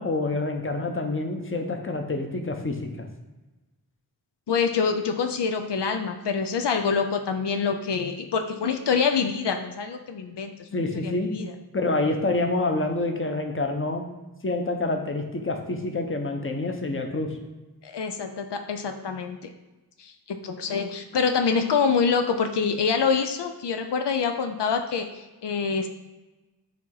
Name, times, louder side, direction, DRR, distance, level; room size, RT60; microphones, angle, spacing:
voice 1, 0.0-2.9 10.7-11.3 11.7-14.0 14.4-17.3, left 2 dB, 30° left, 3 dB, 0.8 m, -27 dB
voice 2, 4.5-11.5 17.8-19.5 20.0-25.9, left 5 dB, 85° left, 6 dB, 0.5 m, -26 dB
8.0 x 2.8 x 4.7 m, 1.1 s
wide cardioid pair, 60°, 40 cm